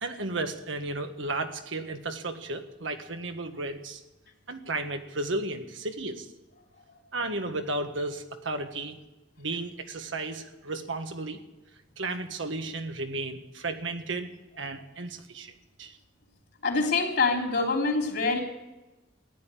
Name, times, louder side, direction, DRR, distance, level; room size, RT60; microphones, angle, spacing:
voice 1, 0.0-4.0 4.5-6.3 7.1-9.0 9.4-11.4 12.0-14.3 14.6-15.5 15.8-15.9, right 2 dB, 85° right, 6 dB, 1.6 m, -33 dB
voice 2, 16.6-18.4, left 3 dB, 60° left, 1 dB, 3.5 m, -25 dB
15.0 x 10.5 x 9.1 m, 1.0 s
head